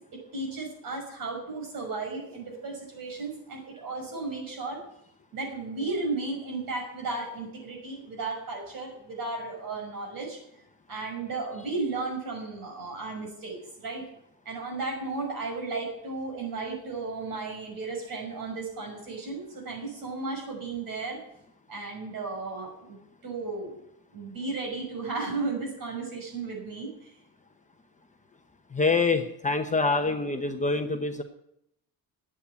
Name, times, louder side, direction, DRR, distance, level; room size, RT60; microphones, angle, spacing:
voice 1, 0.3-4.8 5.3-10.4 10.9-14.0 14.4-21.2 21.7-23.0 23.2-23.8 24.1-26.9, right 3 dB, 60° right, 0 dB, 6.0 m, -34 dB
voice 2, 28.7-31.2, left 3 dB, 20° left, 5 dB, 0.9 m, -25 dB
11.0 x 8.6 x 9.7 m, 0.78 s
cardioid pair, 150°, 39 cm